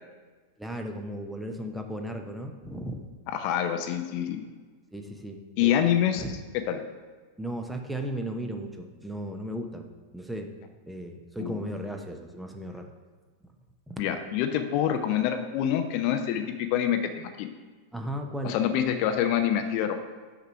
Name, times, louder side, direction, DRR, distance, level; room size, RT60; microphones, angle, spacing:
voice 1, 0.6-3.0 4.9-5.8 6.2-6.3 7.4-9.9 10.1-10.5 10.9-12.9 13.9-14.0 17.9-18.6, right 1 dB, 5° right, 3 dB, 0.8 m, -35 dB
voice 2, 3.3-4.4 5.6-6.8 11.4-11.6 14.0-17.5 18.4-19.9, left 10 dB, 45° left, 7 dB, 0.6 m, -26 dB
6.6 x 4.8 x 5.6 m, 1.4 s
figure-of-eight pair, 90°, 0 cm